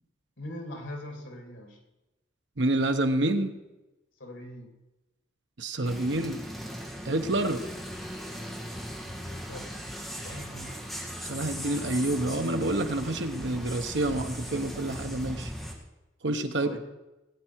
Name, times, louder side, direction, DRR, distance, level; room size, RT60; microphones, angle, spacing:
voice 1, 0.4-1.8 4.2-4.7 9.3-9.7 10.2-10.9 16.5-16.8, left 1 dB, 85° left, 3 dB, 2.6 m, -41 dB
voice 2, 2.6-3.5 5.6-6.4 7.0-7.6 11.2-15.5 16.2-16.7, right 2 dB, 75° right, 7 dB, 1.0 m, -28 dB
sound 1, 5.8-15.7, equal, ahead, 1.7 m, -38 dB
18.5 x 9.0 x 4.7 m, 1.0 s
head